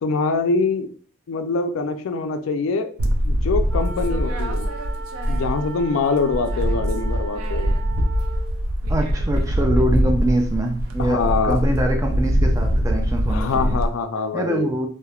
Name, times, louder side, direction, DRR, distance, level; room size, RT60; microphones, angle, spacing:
voice 1, 0.0-0.9 1.3-2.9 3.2-4.7 5.3-7.8 11.0-11.6 13.3-14.7, left 4 dB, 70° left, 9 dB, 0.3 m, -24 dB
sound 1, 3.0-5.8 6.1-13.9, equal, 85° right, 0.4 m, -22 dB
sound 2, 3.7-8.6, right 5 dB, 15° left, 0.9 m, -38 dB
voice 2, 8.9-13.8 14.3-14.9, right 1 dB, 15° right, 3 dB, 0.3 m, -24 dB
2.3 x 2.0 x 2.9 m, 0.43 s
head